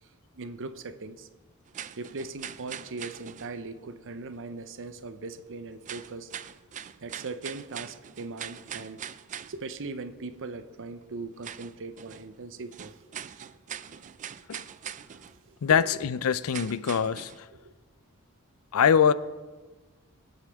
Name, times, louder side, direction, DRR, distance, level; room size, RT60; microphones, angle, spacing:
voice 1, 0.0-1.3 2.0-6.3 7.0-9.0 9.5-13.0 15.5-15.9 17.6-17.7, right 3 dB, 60° right, 11 dB, 0.7 m, -40 dB
sound 1, 1.7-3.6 5.8-9.6 11.0-11.1 11.4-12.3 12.7-15.4 16.5-17.5, right 9 dB, 35° right, 0.3 m, -42 dB
voice 2, 15.6-17.5 18.7-19.1, left 7 dB, 70° left, 16 dB, 0.5 m, -23 dB
24.0 x 8.1 x 3.5 m, 1.3 s
head